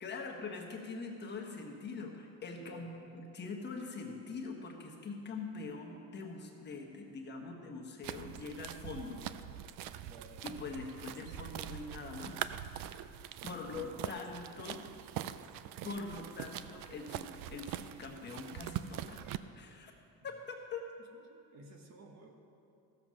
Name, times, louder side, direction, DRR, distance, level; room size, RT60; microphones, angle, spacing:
voice 1, 0.0-2.9 3.1-9.3 10.4-12.5 13.4-14.8 15.6-19.9 20.2-20.8, left 4 dB, 30° left, 1 dB, 1.1 m, -43 dB
voice 2, 2.5-3.0 9.9-10.4 13.3-14.2 20.2-20.3 21.0-21.2 21.5-22.3, right 1 dB, 45° right, 3 dB, 1.5 m, -55 dB
sound 1, 8.0-19.4, right 11 dB, 65° right, 0.5 m, -43 dB
15.5 x 7.3 x 6.2 m, 2.6 s
cardioid pair, 170°, 36 cm